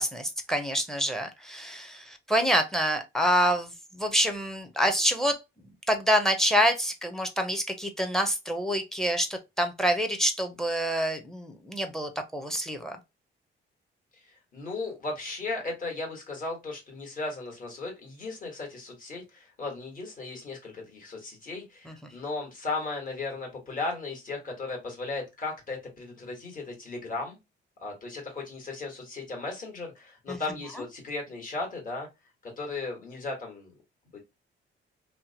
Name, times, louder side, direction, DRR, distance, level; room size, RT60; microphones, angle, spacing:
voice 1, 0.0-5.4 5.9-13.0 21.9-22.0 30.3-30.4, equal, ahead, 0.6 m, -27 dB
voice 2, 14.1-27.4 27.8-32.1 32.4-33.7 34.1-34.2, left 3 dB, 45° left, 1.4 m, -36 dB
2.8 x 2.1 x 2.7 m
cardioid pair, 90°, 20 cm